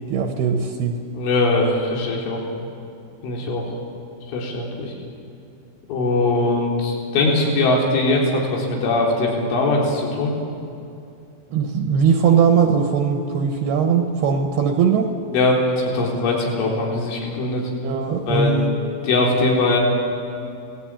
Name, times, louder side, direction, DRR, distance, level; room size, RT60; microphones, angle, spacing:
voice 1, 0.0-1.0 11.5-15.1 17.8-18.8, right 6 dB, 70° right, 4 dB, 2.9 m, -19 dB
voice 2, 1.1-2.4 3.2-3.8 4.3-4.9 5.9-10.3 15.3-17.7 18.3-18.6 19.0-19.8, left 2 dB, 80° left, -1 dB, 6.1 m, -21 dB
29.5 x 19.0 x 8.9 m, 2.6 s
omnidirectional pair, 5.5 m